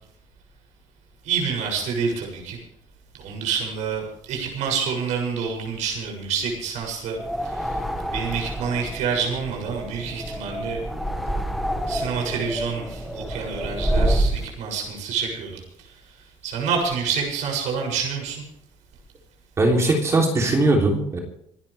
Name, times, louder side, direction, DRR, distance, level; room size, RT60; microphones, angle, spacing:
voice 1, 1.2-2.6 3.2-7.8 8.1-10.8 11.9-15.9 16.4-18.4, right 6 dB, 75° right, 1 dB, 7.2 m, -28 dB
sound 1, 7.2-14.5, right 1 dB, ahead, 1.6 m, -27 dB
voice 2, 19.6-21.2, right 2 dB, 25° right, 1 dB, 3.2 m, -19 dB
27.0 x 12.5 x 3.4 m, 0.73 s
cardioid pair, 175°, 12 cm